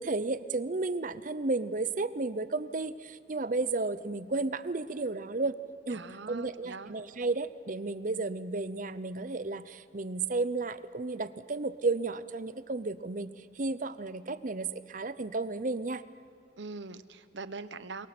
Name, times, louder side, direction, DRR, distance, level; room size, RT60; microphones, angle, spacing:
voice 1, 0.0-5.6 5.9-6.0 6.3-16.0, right 3 dB, 45° right, 14 dB, 0.7 m, -33 dB
voice 2, 5.9-6.9 16.6-18.1, right 3 dB, 70° right, 13 dB, 0.9 m, -42 dB
28.5 x 22.5 x 6.0 m, 2.3 s
head